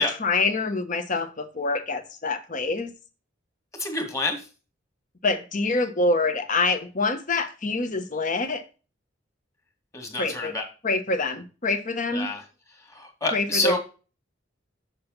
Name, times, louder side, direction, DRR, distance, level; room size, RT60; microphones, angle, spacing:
voice 1, 0.0-2.9 5.2-8.6 10.2-10.5 10.8-12.3 13.3-13.8, left 3 dB, 40° left, 8 dB, 1.1 m, -26 dB
voice 2, 3.8-4.5 9.9-10.6 12.1-12.4 12.9-13.8, left 3 dB, 15° left, 3 dB, 2.1 m, -27 dB
6.7 x 6.7 x 4.0 m, 0.33 s
head